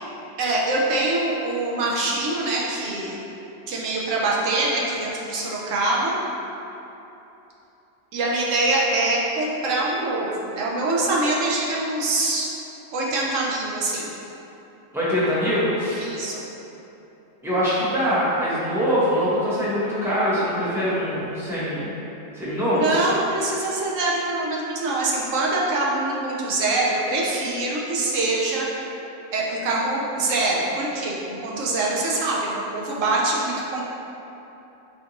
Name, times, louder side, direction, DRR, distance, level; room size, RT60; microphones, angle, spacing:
voice 1, 0.4-3.2 3.7-6.2 8.1-12.5 12.9-14.1 16.0-16.5 22.7-28.7 29.3-33.8, right 2 dB, 75° right, -4 dB, 0.9 m, -24 dB
voice 2, 14.9-16.1 17.4-21.9 22.3-22.9, equal, 5° right, -11 dB, 0.6 m, -23 dB
4.3 x 2.5 x 2.8 m, 3.0 s
omnidirectional pair, 1.4 m